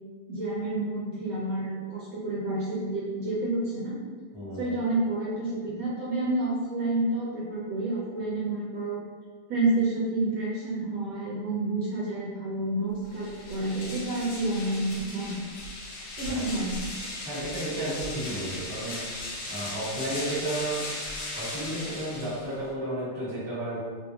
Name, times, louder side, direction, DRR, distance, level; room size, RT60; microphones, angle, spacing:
voice 1, 0.3-4.0 4.5-9.0 9.5-15.4 16.2-16.8, right 2 dB, 65° right, -7 dB, 1.2 m, -29 dB
voice 2, 4.3-4.8 16.3-16.5 17.2-19.0 19.4-20.9 21.3-23.8, right 1 dB, 15° right, -10 dB, 0.6 m, -33 dB
sound 1, 13.0-22.7, left 1 dB, 75° left, 1.5 m, -37 dB
3.4 x 2.6 x 2.8 m, 1.6 s
omnidirectional pair, 2.3 m